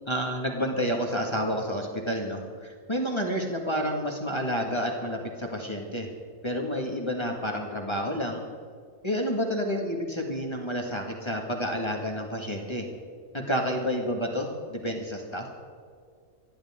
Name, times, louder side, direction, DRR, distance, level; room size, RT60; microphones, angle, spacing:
voice 1, 0.1-6.1 6.4-8.4 9.0-12.9 13.3-15.5, equal, 20° left, 0 dB, 1.9 m, -29 dB
27.5 x 11.5 x 3.7 m, 2.1 s
omnidirectional pair, 1.6 m